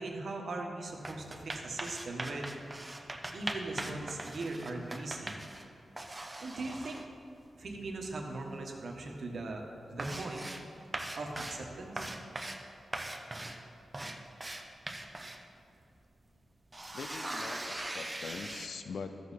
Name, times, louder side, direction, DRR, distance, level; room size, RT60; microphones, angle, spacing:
voice 1, 0.0-2.5 3.0-5.4 6.4-7.0 7.6-9.6 9.9-10.4 11.1-12.1, right 2 dB, 60° right, 1 dB, 1.3 m, -40 dB
sound 1, 0.9-5.7 6.0-7.1 8.2-8.3 8.6-9.0 9.3-9.4 9.8-10.7 10.9-11.7 12.0-12.6 12.9-15.4 16.0-16.1 16.5-18.7, right 1 dB, 15° right, 0.7 m, -41 dB
voice 2, 16.9-19.3, left 5 dB, 75° left, 8 dB, 0.5 m, -43 dB
14.0 x 7.1 x 4.2 m, 2.5 s
wide cardioid pair, 125°, 0 cm